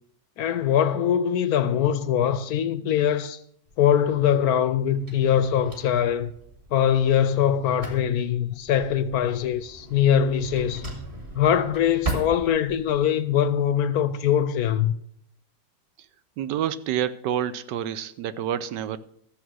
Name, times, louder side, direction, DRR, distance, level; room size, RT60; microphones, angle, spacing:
voice 1, 0.4-3.4 3.8-6.3 6.7-10.9 11.3-14.9, left 9 dB, 70° left, 1.0 m, -22 dB
Drawer open or close, 3.7-13.0, right 2 dB, 30° right, 2.4 m, -39 dB
voice 2, 16.4-19.0, right 10 dB, 85° right, 1.3 m, -28 dB
13.5 x 7.3 x 6.2 m
omnidirectional pair, 1.9 m